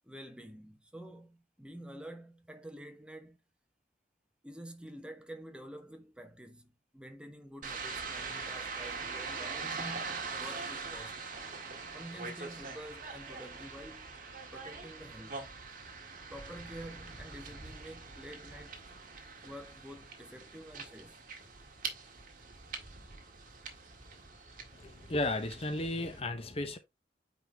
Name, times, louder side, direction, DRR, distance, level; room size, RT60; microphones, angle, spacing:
voice 1, 0.0-3.4 4.4-11.2 11.9-14.1 14.5-15.5 16.3-18.8 19.4-21.2, right 1 dB, 5° right, 1.0 m, -48 dB
sound 1, 7.6-26.2, right 4 dB, 50° right, 1.7 m, -43 dB
voice 2, 24.7-26.8, left 2 dB, 35° left, 0.8 m, -34 dB
9.3 x 3.9 x 3.3 m
head